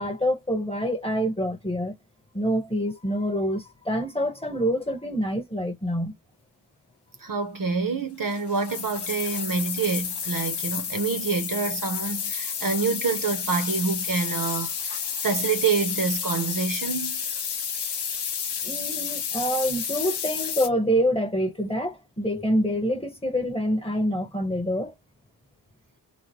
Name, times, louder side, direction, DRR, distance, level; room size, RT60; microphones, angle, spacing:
voice 1, 0.0-1.9 2.3-6.1 18.6-24.9, equal, 15° left, 1.1 m, -26 dB
voice 2, 7.2-17.2, right 5 dB, 50° right, 0.7 m, -27 dB
sound 1, 8.3-20.7, left 7 dB, 70° left, 0.7 m, -31 dB
3.7 x 2.1 x 3.0 m
wide cardioid pair, 105°, 42 cm